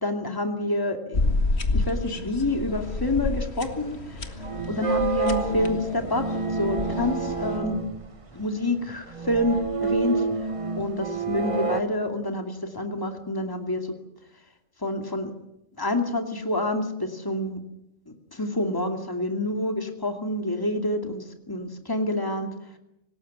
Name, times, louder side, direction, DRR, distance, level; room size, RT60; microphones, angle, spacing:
voice 1, 0.0-1.4 1.7-7.8 8.3-10.3 10.8-13.9 14.8-15.3 15.7-17.6 18.1-22.5, left 1 dB, 15° left, 5 dB, 2.5 m, -28 dB
sound 1, 1.1-7.6, left 2 dB, 55° left, 2.1 m, -30 dB
sound 2, 2.7-11.8, right 4 dB, 25° right, 1.2 m, -29 dB
26.0 x 19.0 x 9.6 m, 0.86 s
omnidirectional pair, 1.3 m